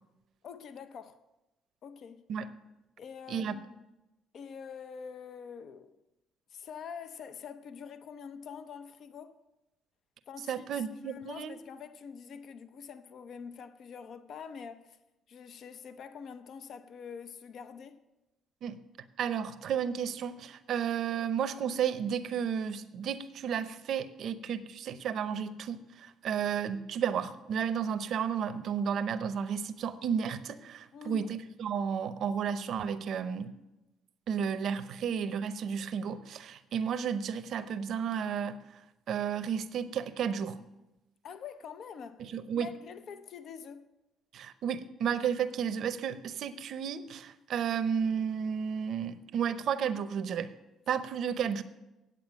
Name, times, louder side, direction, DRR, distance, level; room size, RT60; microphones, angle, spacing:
voice 1, 0.4-1.2 1.8-2.3 3.0-3.8 4.3-5.9 6.5-9.4 10.3-15.0 15.3-18.0 30.9-31.3 41.2-42.3 42.6-43.9, left 6 dB, 60° left, 0.7 m, -45 dB
voice 2, 10.5-11.6 18.6-18.8 19.2-33.5 34.3-38.6 39.1-40.6 42.2-42.7 44.3-50.5 50.9-51.6, right 7 dB, 65° right, 0.7 m, -32 dB
9.1 x 8.1 x 6.4 m
supercardioid pair, 70°, 0 cm